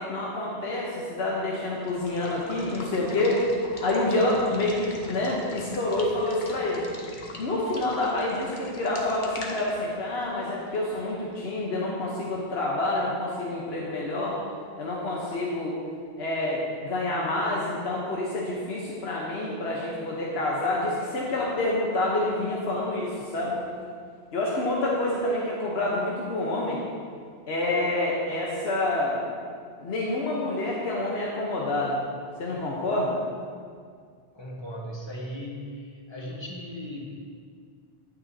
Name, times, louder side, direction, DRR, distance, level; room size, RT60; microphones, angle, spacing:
voice 1, 0.0-3.4 3.8-6.8 7.4-14.4 14.8-15.7 16.2-23.5 24.3-26.8 27.5-29.2 29.8-32.0 32.4-33.2, left 2 dB, 75° left, -4 dB, 1.2 m, -27 dB
Water / Water tap faucet / Liquid, 1.7-11.4, left 2 dB, 50° left, 1.0 m, -42 dB
voice 2, 34.3-37.0, equal, 25° left, -3 dB, 1.3 m, -37 dB
9.7 x 8.8 x 2.8 m, 2.1 s
omnidirectional pair, 1.1 m